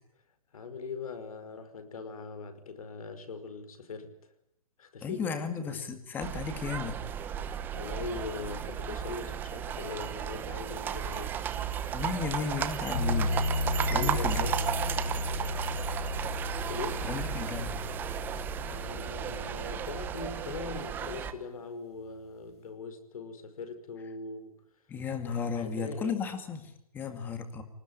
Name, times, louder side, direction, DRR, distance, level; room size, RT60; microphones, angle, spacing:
voice 1, 0.5-4.1 4.8-5.8 7.4-11.4 13.9-14.6 16.7-17.1 18.7-24.6 25.6-26.2, left 4 dB, 75° left, 9 dB, 5.2 m, -41 dB
voice 2, 5.0-7.0 11.9-13.4 13.9-14.5 17.0-17.9 24.9-27.6, left 6 dB, 10° left, 8 dB, 2.1 m, -34 dB
sound 1, 6.2-21.3, right 9 dB, 10° right, 1.0 m, -34 dB
sound 2, 12.9-21.1, left 2 dB, 50° left, 5.3 m, -34 dB
24.5 x 19.5 x 9.7 m, 0.80 s
hypercardioid pair, 170°, 18 cm